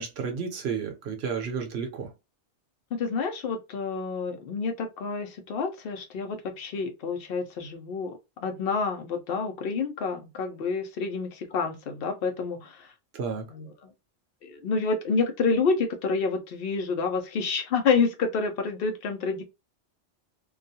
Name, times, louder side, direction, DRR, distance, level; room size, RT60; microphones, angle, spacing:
voice 1, 0.0-2.1 13.1-13.4, right 6 dB, 65° right, 0.8 m, -32 dB
voice 2, 2.9-12.9 13.5-13.9 14.4-19.4, left 4 dB, 60° left, 0.7 m, -28 dB
2.3 x 2.3 x 2.6 m
omnidirectional pair, 1.2 m